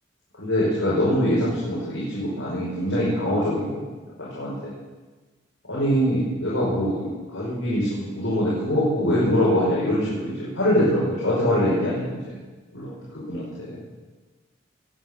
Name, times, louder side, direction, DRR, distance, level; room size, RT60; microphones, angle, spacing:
voice 1, 0.4-3.8 4.2-4.7 5.6-12.2 12.7-13.8, equal, 80° left, -8 dB, 5.5 m, -23 dB
20.0 x 7.7 x 9.0 m, 1.3 s
head